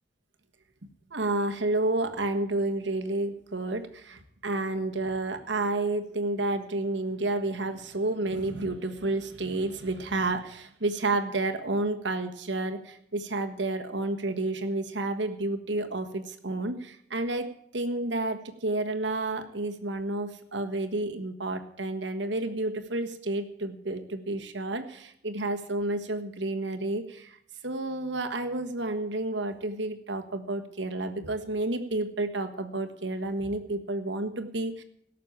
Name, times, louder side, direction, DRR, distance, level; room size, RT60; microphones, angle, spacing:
voice 1, 1.1-17.4 17.7-27.3 27.6-34.8, right 2 dB, 85° right, 6 dB, 1.5 m, -30 dB
17.5 x 6.7 x 8.7 m, 0.70 s
head